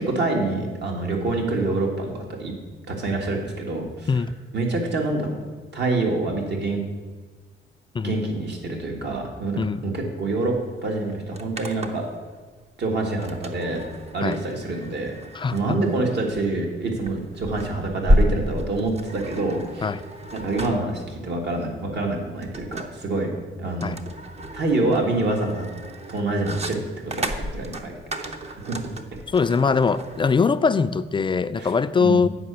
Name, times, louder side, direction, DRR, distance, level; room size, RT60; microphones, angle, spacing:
voice 1, 0.0-2.5 2.9-4.2 4.5-5.4 5.7-6.8 8.0-10.5 10.8-12.1 12.8-13.8 14.1-15.2 15.5-19.9 20.3-23.3 23.6-24.0 24.5-25.7 26.1-27.3 27.5-28.8 31.6-31.7 32.0-32.3, right 2 dB, 60° right, 1 dB, 1.9 m, -26 dB
sound 1, 10.5-10.6 10.9-12.2 13.2-30.3, equal, 35° right, 0.8 m, -30 dB
voice 2, 29.3-32.3, left 5 dB, 25° left, 12 dB, 0.3 m, -21 dB
8.6 x 5.0 x 6.8 m, 1.4 s
cardioid pair, 90°, 20 cm